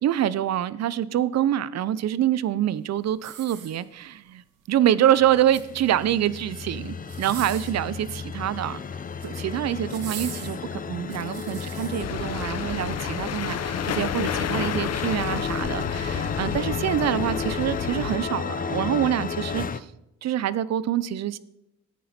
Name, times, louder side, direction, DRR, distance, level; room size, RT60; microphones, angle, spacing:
voice 1, 0.0-4.4 4.7-8.8 9.2-19.9 20.2-21.4, right 11 dB, 60° right, 18 dB, 0.6 m, -26 dB
sound 1, 3.2-4.2 5.3-6.1 7.0-7.8 8.9-9.4 9.9-12.1 12.6-12.8, right 8 dB, 85° right, 1.6 m, -41 dB
sound 2, 5.2-19.8, left 6 dB, 30° left, 0.6 m, -32 dB
sound 3, 12.0-18.2, left 8 dB, 55° left, 0.9 m, -31 dB
14.0 x 9.2 x 4.3 m, 0.87 s
cardioid pair, 90°, 30 cm